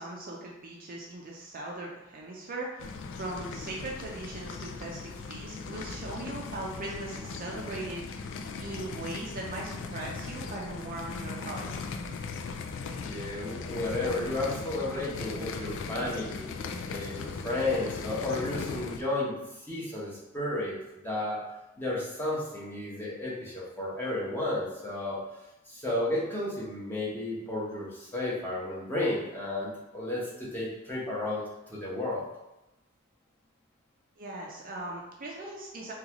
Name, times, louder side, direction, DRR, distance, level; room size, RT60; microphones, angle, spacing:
voice 1, 0.0-11.7 34.2-35.9, right 2 dB, 45° right, -2 dB, 0.5 m, -39 dB
sound 1, 2.8-19.0, left 4 dB, 60° left, 0.3 m, -38 dB
voice 2, 13.0-16.5 16.8-19.3 19.7-20.7 21.0-21.4 21.8-25.2 25.7-31.4 31.7-32.2, left 2 dB, 10° left, -7 dB, 0.9 m, -32 dB
3.8 x 2.4 x 2.9 m, 0.94 s
head